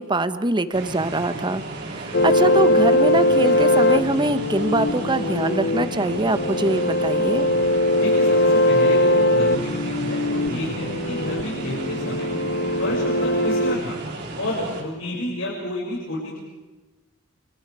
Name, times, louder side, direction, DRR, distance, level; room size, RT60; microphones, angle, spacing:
voice 1, 0.0-7.5, right 2 dB, 20° right, 11 dB, 1.2 m, -24 dB
sound 1, 0.7-14.8, right 2 dB, 55° right, 4.9 m, -34 dB
sound 2, 2.1-13.8, left 1 dB, 55° left, 0.9 m, -21 dB
voice 2, 8.0-12.3 12.8-14.1 14.4-16.4, left 1 dB, 70° left, -5 dB, 6.9 m, -30 dB
29.0 x 29.0 x 5.0 m, 1.2 s
head